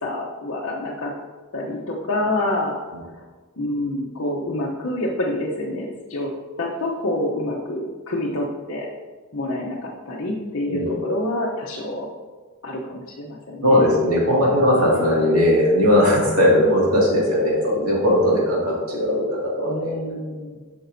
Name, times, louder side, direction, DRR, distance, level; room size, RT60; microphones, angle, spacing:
voice 1, 0.0-1.1 1.5-2.8 3.6-6.3 6.6-8.9 9.3-12.1 12.6-13.9 14.8-15.1 19.7-20.6, left 1 dB, 60° left, -5 dB, 0.8 m, -27 dB
voice 2, 13.6-19.9, left 1 dB, 80° right, -4 dB, 2.2 m, -18 dB
8.6 x 6.0 x 2.7 m, 1.4 s
head